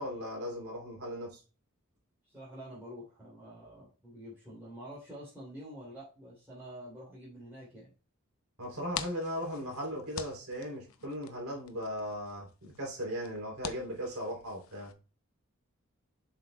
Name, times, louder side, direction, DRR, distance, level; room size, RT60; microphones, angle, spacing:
voice 1, 0.0-1.4 8.6-14.9, equal, 90° right, -1 dB, 3.3 m, -37 dB
voice 2, 2.2-7.9, equal, 10° right, -9 dB, 3.1 m, -47 dB
sound 1, 8.6-14.9, left 8 dB, 75° left, 0.8 m, -46 dB
7.7 x 6.1 x 2.3 m, 0.34 s
head